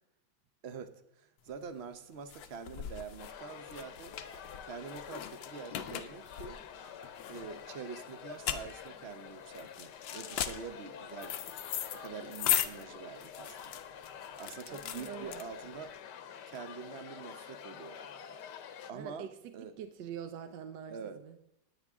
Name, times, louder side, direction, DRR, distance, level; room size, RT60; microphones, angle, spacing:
voice 1, 0.6-4.1 4.6-6.6 7.3-11.4 11.9-13.8 14.4-15.9 16.5-18.0 18.9-19.3 19.5-19.7 20.9-21.2, right 6 dB, 50° right, 10 dB, 0.8 m, -45 dB
sound 1, 1.5-15.9, left 11 dB, 90° left, 1.5 m, -38 dB
sound 2, 3.2-18.9, left 8 dB, 70° left, 1.4 m, -48 dB
voice 2, 14.7-15.4 18.9-21.4, right 9 dB, 70° right, 8 dB, 1.3 m, -45 dB
19.5 x 8.8 x 3.6 m, 0.79 s
omnidirectional pair, 2.0 m